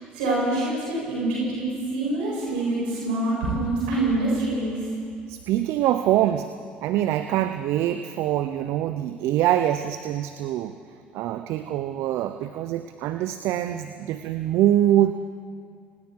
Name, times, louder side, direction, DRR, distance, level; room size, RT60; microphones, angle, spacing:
voice 1, 0.1-1.7 1.9-4.8, right 2 dB, 80° right, -6 dB, 7.7 m, -25 dB
voice 2, 5.3-6.5 6.8-10.8 11.1-15.1, right 12 dB, 65° right, 9 dB, 0.8 m, -24 dB
29.5 x 19.5 x 4.7 m, 2.3 s
hypercardioid pair, 65°, 5 cm